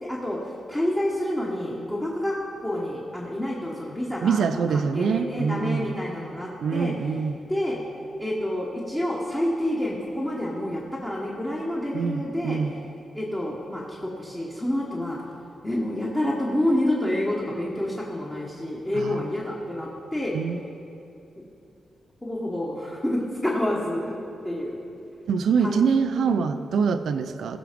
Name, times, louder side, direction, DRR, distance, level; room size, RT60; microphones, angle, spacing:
voice 1, 0.0-2.3 2.6-6.9 7.5-7.8 8.2-12.6 13.1-15.2 15.6-20.4 22.2-24.1 24.4-24.8 25.6-25.9 26.1-26.5, left 1 dB, 10° left, -5 dB, 1.2 m, -28 dB
voice 2, 4.2-5.9 6.6-7.3 11.9-12.7 19.0-19.3 20.3-20.6 25.3-27.6, right 6 dB, 70° right, 10 dB, 0.6 m, -24 dB
16.5 x 6.2 x 5.1 m, 2.7 s
wide cardioid pair, 150°, 0 cm